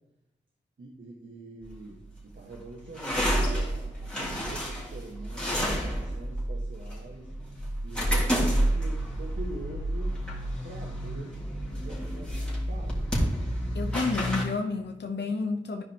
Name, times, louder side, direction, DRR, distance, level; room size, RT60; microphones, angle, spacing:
voice 1, 0.8-7.3 7.8-10.2 10.6-13.1, right 2 dB, 75° right, -3 dB, 1.4 m, -44 dB
sound 1, 1.6-14.4, equal, 5° left, 2.9 m, -30 dB
voice 2, 13.7-15.8, left 3 dB, 65° left, 3 dB, 0.9 m, -30 dB
13.5 x 5.1 x 2.9 m, 0.92 s
wide cardioid pair, 55°, 19 cm